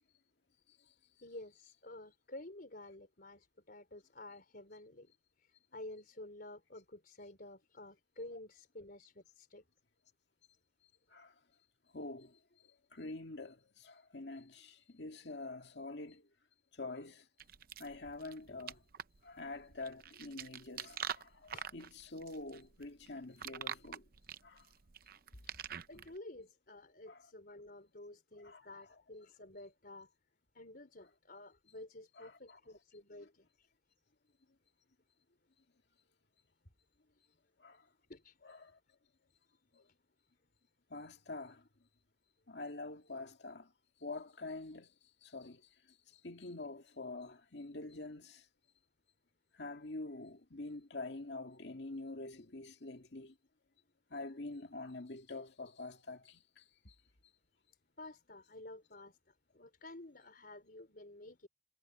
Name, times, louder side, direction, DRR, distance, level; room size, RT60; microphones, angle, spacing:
voice 1, 1.2-5.1 5.4-9.6 21.5-21.6 25.9-30.1 30.5-33.7 38.1-38.4 58.0-61.5, left 2 dB, 55° left, 4.5 m, -51 dB
voice 2, 11.9-16.3 16.7-17.3 17.8-18.8 19.2-24.0 24.4-24.7 27.1-27.3 28.4-28.8 32.2-32.6 33.2-33.3 37.6-37.8 38.4-38.8 39.7-39.9 40.9-41.7 42.5-43.7 44.0-44.9 45.2-45.6 45.9-46.0 46.2-48.5 49.5-53.4 54.1-57.0, left 2 dB, 70° left, 2.1 m, -46 dB
sound 1, 17.4-26.2, right 8 dB, 55° right, 0.7 m, -46 dB
head